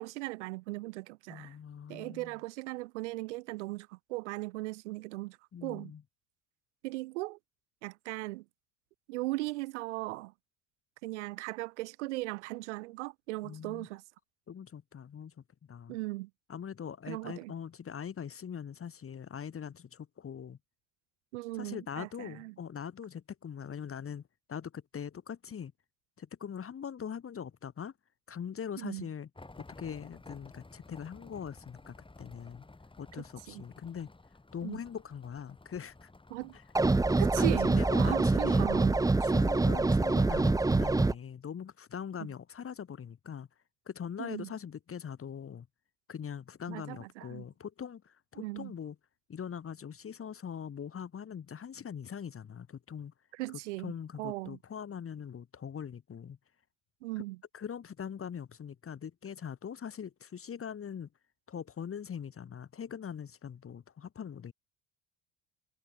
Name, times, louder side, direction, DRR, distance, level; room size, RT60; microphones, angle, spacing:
voice 1, 0.0-1.5 1.9-5.9 6.8-7.4 7.8-8.4 9.1-10.3 11.0-14.0 15.9-16.3 17.1-17.5 21.3-22.5 28.8-29.0 33.5-33.6 34.6-34.8 36.3-36.6 37.2-39.0 44.2-44.5 46.7-47.4 48.4-48.7 53.3-54.6 57.0-57.4, right 21 dB, 90° right, 1.7 m, -38 dB
voice 2, 1.3-2.4 5.5-6.0 13.4-13.9 14.5-15.3 15.7-16.0 16.5-20.6 21.5-24.2 24.5-25.7 26.2-27.9 28.3-29.3 29.8-32.6 33.0-34.1 34.5-36.1 36.5-36.6 37.4-37.5 37.8-38.7 39.2-43.5 43.9-45.7 46.1-49.0 49.3-53.1 53.5-56.4 57.5-61.1 61.5-64.5, left 7 dB, 40° left, 3.9 m, -42 dB
sound 1, 29.4-39.4, left 2 dB, 15° left, 6.1 m, -54 dB
sound 2, 36.8-41.1, right 3 dB, 10° right, 0.9 m, -25 dB
supercardioid pair, 75°, 34 cm